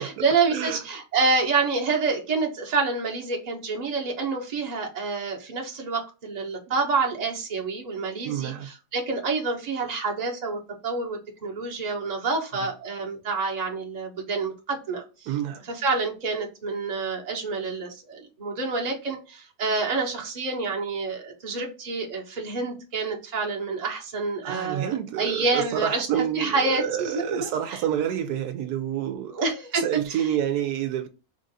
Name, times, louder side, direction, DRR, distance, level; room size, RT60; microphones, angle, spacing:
voice 1, 0.0-15.3 15.7-27.8 29.3-29.8, right 4 dB, 30° right, 0.9 m, -28 dB
voice 2, 0.5-0.8 6.7-6.8 8.2-8.7 12.5-12.7 15.3-15.6 24.4-29.3 29.7-31.1, right 10 dB, 80° right, 1.1 m, -28 dB
3.5 x 2.5 x 3.9 m
omnidirectional pair, 1.6 m